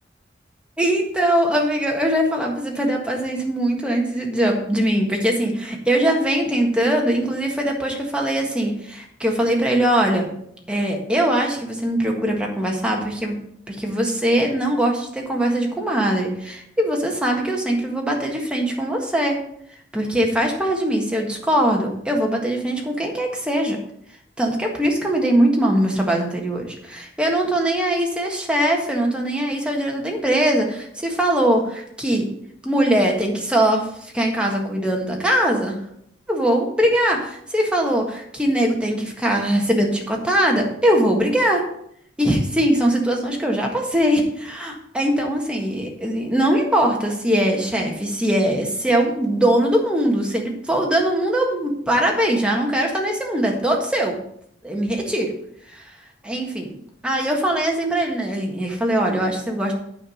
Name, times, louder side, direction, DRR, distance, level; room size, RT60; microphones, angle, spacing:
voice 1, 0.8-10.3 10.7-13.4 13.7-19.4 19.9-23.8 24.4-32.3 32.6-35.8 36.3-41.6 42.2-54.2 54.6-55.3 55.7-55.9 56.2-56.7 57.0-59.7, right 1 dB, 5° right, 0 dB, 1.6 m, -21 dB
8.9 x 4.8 x 6.3 m, 0.68 s
head